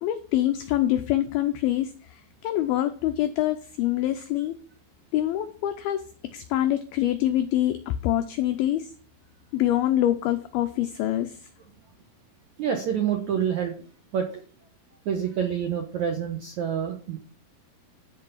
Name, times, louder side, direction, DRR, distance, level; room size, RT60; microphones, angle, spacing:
voice 1, 0.0-1.9 2.4-4.6 5.1-8.9 9.5-11.4, left 13 dB, 85° left, 9 dB, 2.1 m, -25 dB
voice 2, 12.6-13.7 14.1-14.4 15.0-17.2, right 8 dB, 75° right, 3 dB, 1.7 m, -27 dB
12.0 x 4.7 x 7.2 m, 0.40 s
omnidirectional pair, 5.2 m